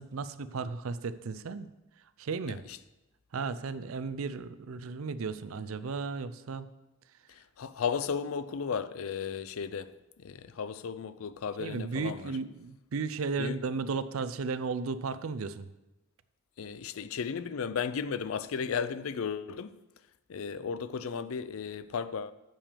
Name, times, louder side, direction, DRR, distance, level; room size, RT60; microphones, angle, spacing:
voice 1, 0.0-1.7 2.2-2.6 3.3-6.7 11.6-15.7, right 4 dB, 85° right, 0.5 m, -34 dB
voice 2, 2.5-2.8 7.3-12.3 13.4-13.6 16.6-19.7 20.3-22.3, left 6 dB, 80° left, 0.5 m, -35 dB
7.1 x 5.9 x 6.6 m
head